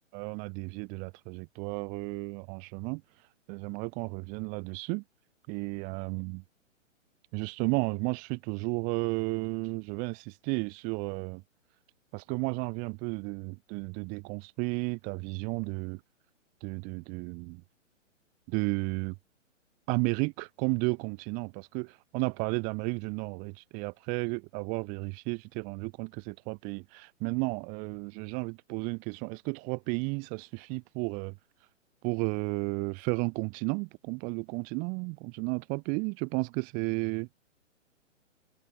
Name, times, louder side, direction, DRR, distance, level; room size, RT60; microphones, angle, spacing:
voice 1, 0.1-3.0 3.5-5.0 5.5-6.4 7.3-11.4 12.1-16.0 16.6-17.6 18.5-19.1 19.9-31.4 32.0-37.3, right 33 dB, 20° right, 1.4 m, -33 dB
figure-of-eight pair, 120°, 38 cm